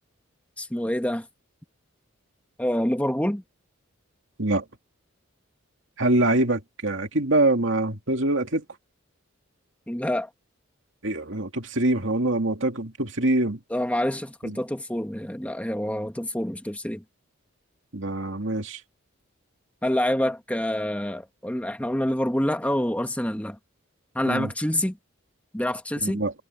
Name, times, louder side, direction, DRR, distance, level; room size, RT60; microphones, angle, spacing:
voice 1, 0.6-1.3 2.6-3.4 9.9-10.3 13.7-17.0 19.8-23.6 24.1-25.0 25.5-26.2, left 1 dB, 5° left, 1.4 m, -27 dB
voice 2, 6.0-8.6 11.0-13.6 14.4-14.6 17.9-18.8 24.3-24.5 26.0-26.3, right 2 dB, 60° right, 2.6 m, -24 dB
head